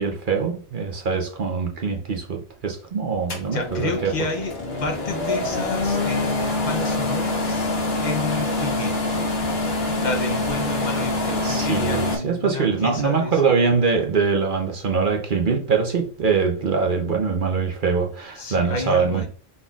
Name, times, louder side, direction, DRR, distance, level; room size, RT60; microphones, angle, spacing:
voice 1, 0.0-4.1 11.4-19.3, right 5 dB, 55° right, 0.8 m, -23 dB
sound 1, 3.3-12.2, left 2 dB, 65° left, 1.3 m, -25 dB
voice 2, 3.4-4.5 4.8-7.7 8.0-9.0 10.0-13.3 18.4-19.3, left 3 dB, 45° left, 0.9 m, -30 dB
5.3 x 4.1 x 2.4 m
omnidirectional pair, 1.1 m